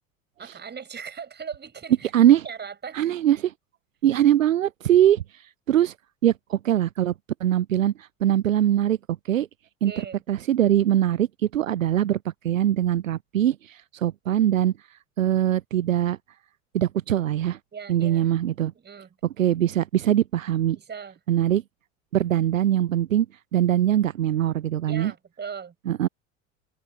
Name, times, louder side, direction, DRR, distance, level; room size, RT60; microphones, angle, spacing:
voice 1, 0.4-2.1 2.4-3.1 9.8-10.2 17.7-18.3 18.7-19.1 20.7-21.2 24.9-25.7, right 6 dB, 25° right, 5.6 m, -39 dB
voice 2, 2.1-2.4 2.9-3.4 4.0-5.4 5.7-5.9 6.2-7.1 7.4-9.0 9.3-9.5 9.8-9.9 10.3-11.3 11.5-14.7 15.2-16.2 16.7-17.6 17.9-18.7 19.4-20.8 21.3-21.6 22.1-23.3 23.5-25.1 25.9-26.1, right 11 dB, 85° right, 0.5 m, -22 dB
figure-of-eight pair, 65°, 39 cm